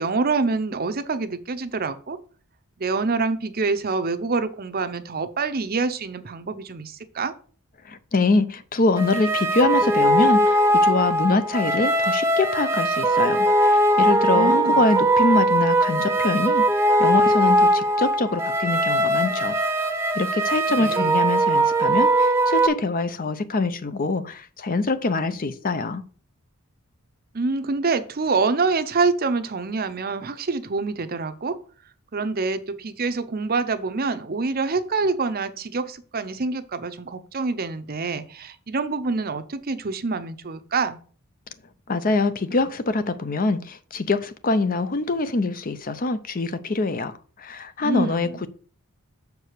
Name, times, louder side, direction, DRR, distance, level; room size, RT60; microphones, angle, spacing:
voice 1, 0.0-2.2 2.8-7.3 14.2-14.9 20.8-21.2 27.3-31.6 32.1-41.0 47.8-48.5, right 4 dB, 45° right, 0.7 m, -26 dB
voice 2, 7.8-16.7 17.0-19.6 20.1-26.0 41.9-48.5, left 3 dB, 40° left, 0.6 m, -24 dB
sound 1, 9.0-22.7, right 1 dB, 10° right, 0.8 m, -20 dB
6.7 x 4.7 x 6.6 m
head